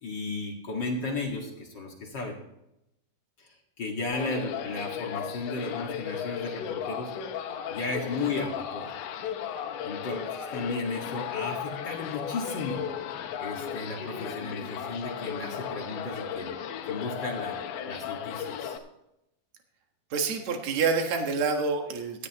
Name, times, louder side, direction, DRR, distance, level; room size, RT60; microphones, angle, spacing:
voice 1, 0.0-2.4 3.4-7.1 7.7-9.0 9.8-12.9 13.4-16.5 16.9-17.6 17.9-18.8, left 3 dB, 55° left, 0 dB, 1.2 m, -34 dB
sound 1, 4.1-18.8, left 8 dB, 85° left, 3.2 m, -35 dB
voice 2, 20.1-22.3, right 5 dB, 55° right, 3 dB, 2.1 m, -27 dB
17.0 x 13.0 x 3.0 m, 0.84 s
omnidirectional pair, 5.1 m